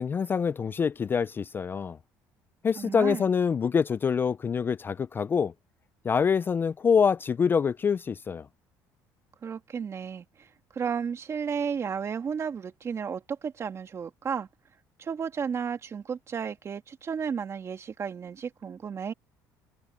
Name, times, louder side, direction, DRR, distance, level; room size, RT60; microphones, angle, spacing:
voice 1, 0.0-2.0 2.6-5.5 6.0-8.5, left 6 dB, 25° left, 0.3 m, -25 dB
voice 2, 2.8-3.3 9.4-10.5 10.7-14.5 15.0-19.1, right 6 dB, 35° right, 2.3 m, -33 dB
cardioid pair, 110°, 8 cm